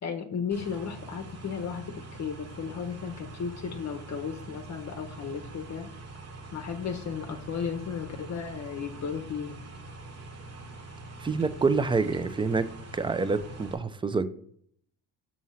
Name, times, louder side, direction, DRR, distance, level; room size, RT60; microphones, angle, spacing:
voice 1, 0.0-5.9 6.5-9.6, left 6 dB, 40° left, 6 dB, 0.7 m, -35 dB
sound 1, 0.5-13.7, right 2 dB, 40° right, 1.3 m, -44 dB
voice 2, 11.2-14.3, right 4 dB, 15° right, 13 dB, 0.3 m, -27 dB
6.0 x 2.9 x 5.6 m, 0.63 s
supercardioid pair, 85°, 41 cm